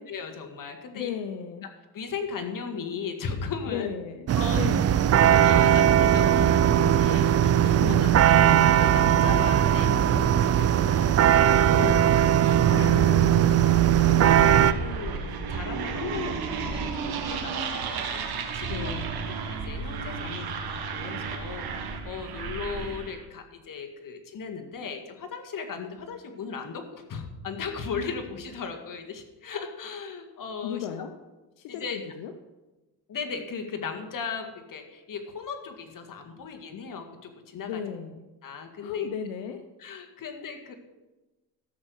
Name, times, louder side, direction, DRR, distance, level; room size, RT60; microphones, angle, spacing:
voice 1, 0.1-1.1 1.9-3.9 4.3-4.6 5.3-12.0 12.4-12.9 13.6-19.0 19.3-30.9 31.7-32.0 33.1-37.8 38.4-39.1 39.8-40.7, left 5 dB, 45° left, 5 dB, 1.9 m, -37 dB
voice 2, 0.9-1.7 3.7-4.2 4.5-5.2 7.8-8.2 11.8-12.1 12.7-13.8 18.7-19.3 30.6-31.1 31.6-32.3 37.6-38.2 38.8-39.6, left 8 dB, 80° left, 7 dB, 0.9 m, -35 dB
sound 1, 4.3-14.7, right 10 dB, 35° right, 0.5 m, -19 dB
sound 2, 13.8-23.2, right 5 dB, 55° right, 1.9 m, -33 dB
13.5 x 6.5 x 6.4 m, 1.1 s
cardioid pair, 90°, 44 cm